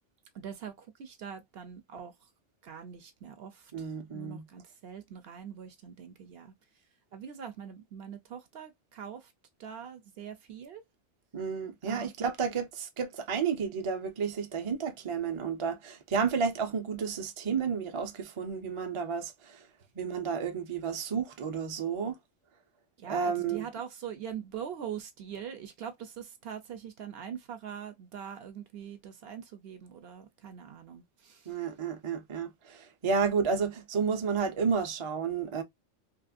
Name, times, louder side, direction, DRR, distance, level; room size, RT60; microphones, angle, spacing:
voice 1, 0.3-2.1 2.6-3.9 4.1-6.5 7.1-9.3 9.6-10.8 11.8-12.3 23.0-31.6, right 8 dB, 65° right, 0.7 m, -43 dB
voice 2, 3.7-4.5 11.3-19.6 20.0-22.2 23.1-23.7 31.5-35.6, right 6 dB, 40° right, 0.4 m, -31 dB
2.9 x 2.5 x 2.4 m
omnidirectional pair, 1.2 m